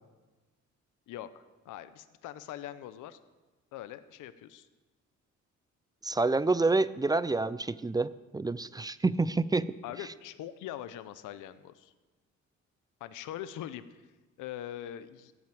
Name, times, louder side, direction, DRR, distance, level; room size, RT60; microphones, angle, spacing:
voice 1, 1.1-3.2 3.7-4.7 9.8-11.9 13.0-14.0 14.4-15.3, left 11 dB, 85° left, 13 dB, 0.7 m, -42 dB
voice 2, 6.0-9.7, right 3 dB, 15° right, 17 dB, 0.4 m, -28 dB
15.0 x 6.0 x 7.8 m, 1.2 s
cardioid pair, 90°, 30 cm